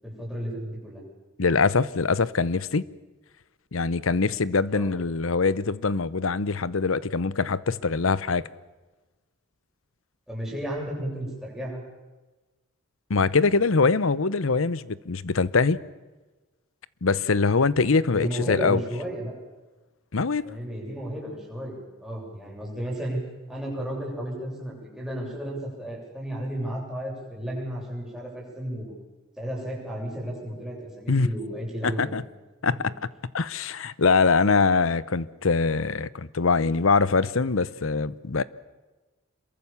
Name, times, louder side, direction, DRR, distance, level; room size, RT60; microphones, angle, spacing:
voice 1, 0.0-1.0 4.7-4.9 10.3-11.8 18.1-19.3 20.4-23.2 23.5-28.9 29.4-32.2, right 1 dB, 5° right, 7.9 m, -33 dB
voice 2, 1.4-2.8 3.7-8.5 13.1-15.8 17.0-18.8 20.1-20.4 31.1-31.3 31.8-32.2 32.6-32.9 33.3-38.4, left 4 dB, 80° left, 0.8 m, -23 dB
27.0 x 22.5 x 7.2 m
head